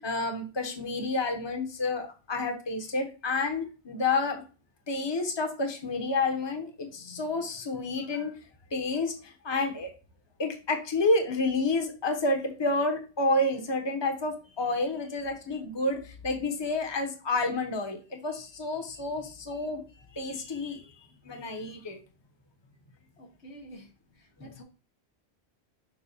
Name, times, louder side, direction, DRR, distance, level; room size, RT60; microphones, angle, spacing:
voice 1, 0.0-4.4 4.9-8.3 8.7-9.9 10.4-19.8 20.1-20.8 21.2-22.0, left 2 dB, 25° left, 3 dB, 1.0 m, -29 dB
voice 2, 23.2-23.9 24.4-24.6, equal, 75° left, 3 dB, 1.4 m, -48 dB
7.0 x 2.4 x 5.5 m, 0.35 s
omnidirectional pair, 1.1 m